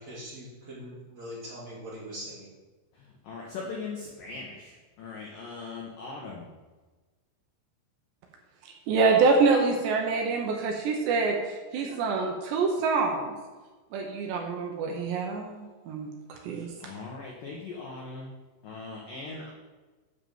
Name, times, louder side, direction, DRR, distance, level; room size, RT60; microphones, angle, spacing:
voice 1, 0.0-2.5, equal, 25° right, -7 dB, 2.9 m, -42 dB
voice 2, 3.2-6.5 16.8-18.3 18.6-19.5, left 4 dB, 90° left, -2 dB, 1.9 m, -39 dB
voice 3, 8.9-11.4 11.7-13.3 13.9-16.9, right 4 dB, 75° right, 1 dB, 3.0 m, -26 dB
9.8 x 5.4 x 7.2 m, 1.3 s
omnidirectional pair, 5.6 m